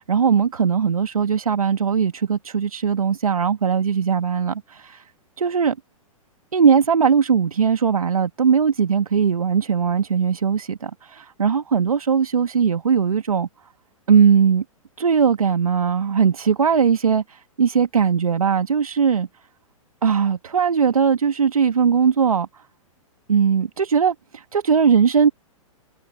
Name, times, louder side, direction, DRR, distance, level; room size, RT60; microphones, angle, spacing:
voice 1, 0.0-5.0 5.4-5.8 6.5-13.5 14.1-14.6 15.0-17.2 17.6-19.3 20.0-22.6 23.3-25.3, right 6 dB, 80° right, 1.6 m, -19 dB
figure-of-eight pair, 115°, 18 cm